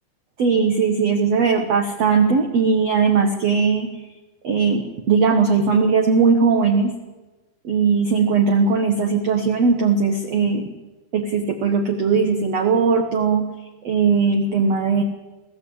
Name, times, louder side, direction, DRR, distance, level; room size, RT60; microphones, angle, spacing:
voice 1, 0.4-3.9 4.4-4.8 5.1-6.9 7.6-10.6 11.1-13.5 13.8-15.0, right 5 dB, 75° right, 6 dB, 1.5 m, -19 dB
22.0 x 15.0 x 8.6 m, 1.2 s
omnidirectional pair, 5.1 m